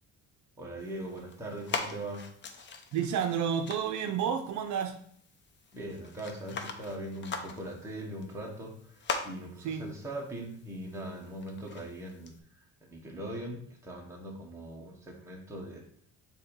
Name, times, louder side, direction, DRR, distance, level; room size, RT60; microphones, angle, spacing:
voice 1, 0.6-2.3 5.7-12.3 12.8-15.8, right 1 dB, 10° right, -2 dB, 1.2 m, -41 dB
sound 1, 0.8-12.4, left 4 dB, 35° left, 0.6 m, -42 dB
voice 2, 2.9-5.0 9.6-9.9, right 8 dB, 60° right, 5 dB, 0.6 m, -30 dB
7.5 x 2.9 x 5.3 m, 0.62 s
cardioid pair, 170°, 33 cm